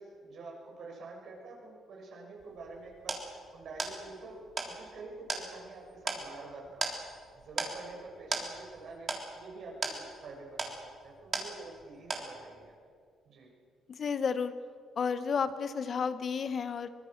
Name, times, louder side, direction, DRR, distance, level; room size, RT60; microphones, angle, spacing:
voice 1, 0.0-12.8 13.2-13.5, right 3 dB, 65° right, -1 dB, 6.8 m, -47 dB
sound 1, 2.4-11.8 12.1-12.7, right 3 dB, 40° right, 3.7 m, -38 dB
voice 2, 13.9-14.5 15.0-16.9, left 6 dB, 50° left, 12 dB, 1.1 m, -31 dB
24.0 x 20.0 x 6.7 m, 2.2 s
cardioid pair, 90°, 0 cm